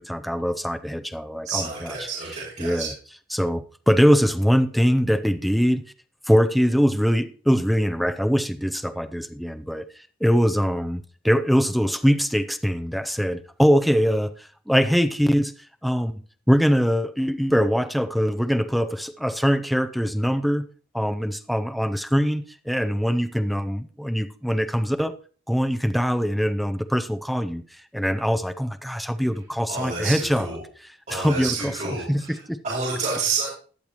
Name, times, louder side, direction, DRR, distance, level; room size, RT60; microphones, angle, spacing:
voice 1, 0.0-1.9 2.6-2.9 3.3-5.9 6.3-9.9 10.2-15.5 15.8-20.7 20.9-25.1 25.5-27.6 27.9-30.5 31.1-31.7 32.1-32.6, equal, ahead, 0.5 m, -22 dB
voice 2, 1.4-2.9 29.7-30.6 31.1-33.5, right 4 dB, 45° right, 6.9 m, -29 dB
20.5 x 7.0 x 3.0 m
head